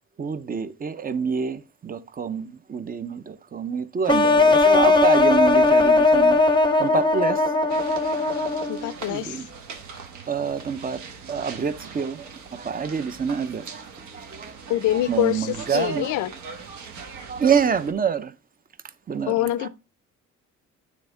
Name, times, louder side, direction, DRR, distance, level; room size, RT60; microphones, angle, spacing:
voice 1, 0.2-6.4 6.8-7.4 9.1-9.5 10.3-11.0 11.3-13.8 14.1-14.5 15.1-16.1 17.3-18.3 19.1-19.3 19.6-19.7, right 6 dB, 30° right, 0.6 m, -26 dB
sound 1, 4.1-8.9, left 3 dB, 15° left, 0.7 m, -18 dB
voice 2, 4.5-5.0 8.7-9.4 14.7-16.3 19.3-19.7, left 14 dB, 75° left, 0.5 m, -25 dB
sound 2, 7.7-17.9, right 5 dB, 75° right, 1.1 m, -40 dB
9.2 x 3.6 x 3.8 m
cardioid pair, 90°, 30 cm